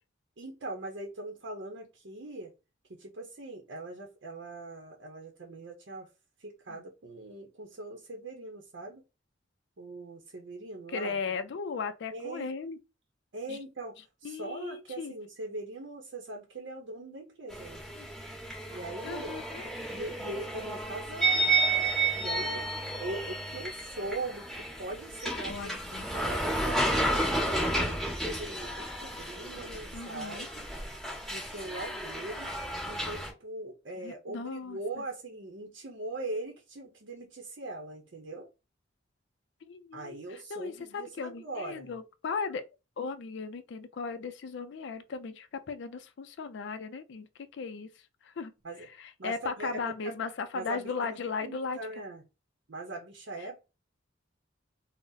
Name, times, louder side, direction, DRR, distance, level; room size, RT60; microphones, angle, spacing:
voice 1, 0.4-2.5 2.9-6.1 6.4-9.0 9.8-11.2 12.1-12.5 13.3-13.9 14.2-17.8 18.7-19.3 19.9-21.6 22.1-25.7 26.1-30.7 31.3-32.5 32.9-38.5 39.9-41.9 48.6-48.9 49.2-50.1 50.5-52.2 52.7-53.6, right 2 dB, 60° right, 0.7 m, -41 dB
voice 2, 10.9-12.8 13.5-13.6 14.2-15.1 18.0-18.1 19.0-19.7 25.5-26.1 29.9-30.5 34.0-34.8 39.6-42.6 43.0-47.3 47.5-47.9 48.2-48.5 49.0-51.8, left 5 dB, 65° left, 0.4 m, -37 dB
sound 1, 17.5-33.3, right 2 dB, ahead, 1.3 m, -32 dB
3.8 x 2.0 x 2.6 m
head